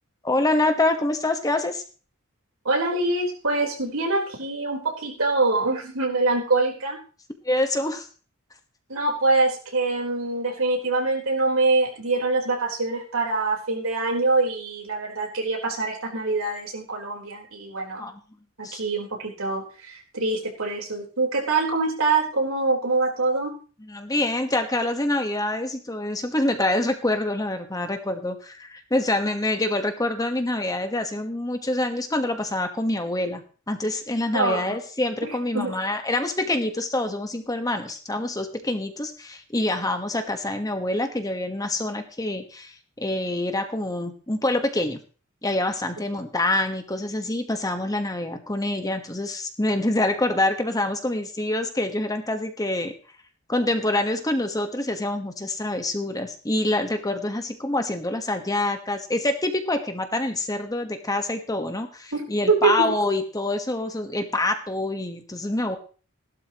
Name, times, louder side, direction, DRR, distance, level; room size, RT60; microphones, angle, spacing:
voice 1, 0.2-1.8 7.4-8.1 18.0-18.2 18.6-18.8 23.8-33.4 33.7-45.0 45.4-52.9 53.5-65.8, left 2 dB, 15° left, 7 dB, 1.3 m, -26 dB
voice 2, 2.6-7.0 8.9-18.1 18.6-23.5 34.3-34.6 35.5-35.7 62.1-62.9, right 3 dB, 85° right, 0 dB, 4.2 m, -24 dB
17.0 x 12.0 x 3.0 m, 0.38 s
head